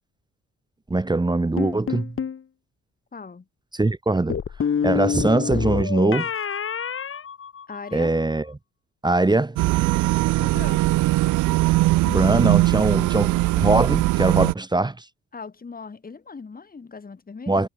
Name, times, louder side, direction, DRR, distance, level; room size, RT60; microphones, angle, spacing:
voice 1, 0.9-2.1 3.7-4.4 4.8-6.3 7.9-8.4 9.0-9.6 12.0-15.0 17.5-17.7, right 2 dB, 15° right, 1.5 m, -21 dB
sound 1, 1.6-2.4 4.3-8.1, left 7 dB, 45° left, 2.7 m, -27 dB
voice 2, 3.1-3.5 7.7-8.2 10.4-10.8 15.3-17.7, left 4 dB, 30° left, 3.5 m, -39 dB
sound 2, 9.6-14.5, right 19 dB, 85° right, 0.6 m, -20 dB
cardioid pair, 90°, 30 cm